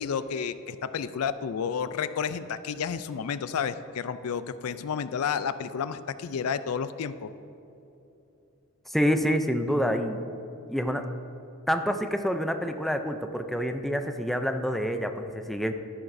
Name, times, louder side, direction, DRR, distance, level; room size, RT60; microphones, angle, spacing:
voice 1, 0.0-7.3, left 6 dB, 75° left, 13 dB, 0.4 m, -31 dB
voice 2, 8.9-10.2 10.7-11.1 11.7-15.7, equal, ahead, 6 dB, 0.4 m, -27 dB
13.5 x 10.5 x 2.7 m, 2.9 s
head